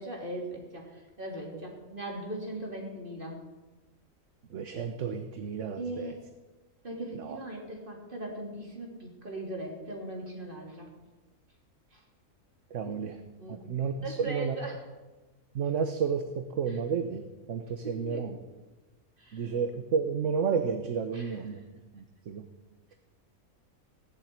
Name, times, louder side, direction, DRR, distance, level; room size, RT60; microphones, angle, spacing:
voice 1, 0.0-3.4 5.8-6.2 6.8-10.9 11.9-12.0 12.8-12.9 13.4-13.6 14.0-14.8 17.8-18.3 19.2-19.4 21.1-21.4, right 1 dB, 35° right, 0 dB, 3.5 m, -39 dB
voice 2, 4.5-6.1 7.1-7.4 12.7-13.2 13.5-14.5 15.5-18.4 19.3-21.6 21.9-22.5, right 6 dB, 60° right, 7 dB, 1.2 m, -31 dB
17.0 x 7.6 x 9.5 m, 1.2 s
omnidirectional pair, 1.5 m